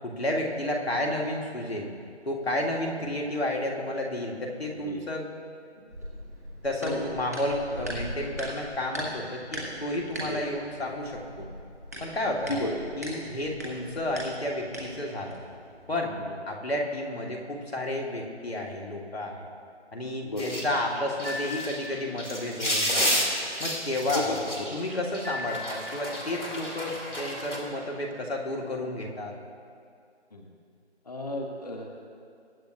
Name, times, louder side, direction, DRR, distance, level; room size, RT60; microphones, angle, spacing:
voice 1, 0.0-1.9 2.3-5.3 6.6-11.5 12.0-12.6 13.0-15.4 15.9-16.2 16.5-19.5 19.9-23.3 23.6-24.4 24.7-29.3, left 1 dB, 60° left, 0 dB, 2.1 m, -31 dB
sound 1, 5.9-15.9, equal, 15° right, 1.0 m, -40 dB
voice 2, 6.8-7.1 10.2-10.4 12.3-12.8 16.3-16.4 20.2-20.6 24.1-25.0 30.3-30.5 31.1-31.9, left 1 dB, 35° left, 3 dB, 1.1 m, -33 dB
sound 2, 20.4-27.6, equal, 80° left, 3.0 m, -31 dB
22.0 x 9.1 x 2.7 m, 2.3 s
figure-of-eight pair, 165°, 35 cm